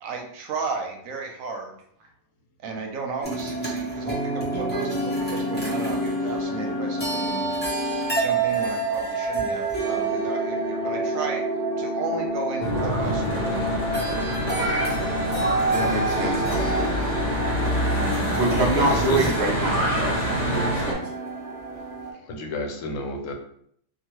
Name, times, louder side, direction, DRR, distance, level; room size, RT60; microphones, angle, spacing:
voice 1, 0.0-1.8 2.6-7.8 8.1-11.4 11.8-14.0, right 4 dB, 85° right, 2 dB, 1.0 m, -34 dB
sound 1, 3.2-22.1, right 2 dB, 10° left, 0.5 m, -28 dB
Church bell / Traffic noise roadway noise, 12.6-20.9, equal, 35° left, 0.8 m, -26 dB
voice 2, 15.7-16.9 18.3-21.0, right 2 dB, 60° right, 0 dB, 0.8 m, -26 dB
voice 3, 18.3-19.3 22.1-23.3, left 2 dB, 75° left, 2 dB, 1.0 m, -31 dB
2.8 x 2.4 x 2.9 m, 0.67 s
omnidirectional pair, 1.4 m